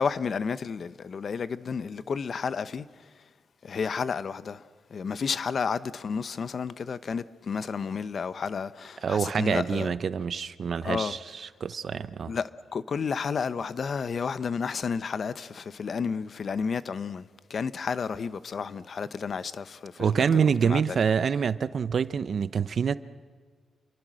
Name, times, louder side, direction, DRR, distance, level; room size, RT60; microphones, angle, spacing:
voice 1, 0.0-2.9 3.6-4.6 4.9-9.9 10.8-11.2 12.3-17.2 17.5-21.0, left 5 dB, 55° left, 0.8 m, -31 dB
voice 2, 9.0-12.3 20.0-22.9, right 6 dB, 55° right, 0.8 m, -26 dB
28.5 x 22.5 x 6.4 m
cardioid pair, 95°, 0 cm